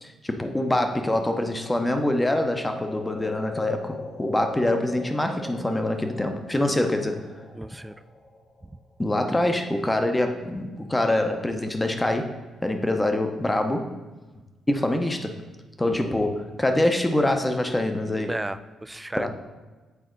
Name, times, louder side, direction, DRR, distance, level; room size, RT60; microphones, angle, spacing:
voice 1, 0.0-7.2 9.0-12.3 12.6-13.9 14.7-15.4 15.8-18.3 19.2-19.3, left 1 dB, 15° left, 6 dB, 0.8 m, -25 dB
sound 1, 1.0-9.0, left 3 dB, 55° left, 1.2 m, -41 dB
voice 2, 7.5-7.9 8.6-8.8 15.9-16.1 18.3-19.3, right 1 dB, 10° right, 13 dB, 0.3 m, -34 dB
8.3 x 4.2 x 3.9 m, 1.2 s
cardioid pair, 90°, 0 cm